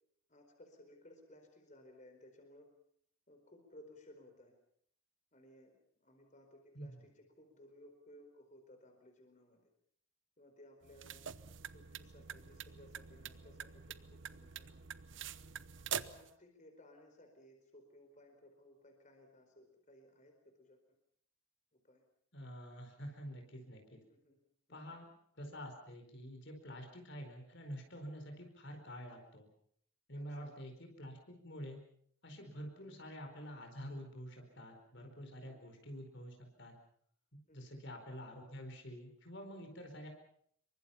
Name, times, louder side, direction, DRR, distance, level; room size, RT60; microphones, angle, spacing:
voice 1, 0.3-2.7 3.3-4.5 5.3-9.7 10.4-11.2 11.7-14.7 15.9-20.8 21.7-22.0 23.9-24.4 24.7-25.0 30.1-30.6 32.7-32.9 35.4-35.7 37.5-37.8, left 1 dB, 35° left, 4 dB, 4.6 m, -60 dB
sound 1, 10.8-16.3, right 8 dB, 60° right, 0.9 m, -46 dB
voice 2, 22.3-24.0 24.7-25.1 25.4-29.5 30.1-31.8 32.2-36.7 37.5-40.1, equal, 55° left, 4 dB, 4.7 m, -48 dB
27.0 x 23.5 x 5.8 m, 0.64 s
head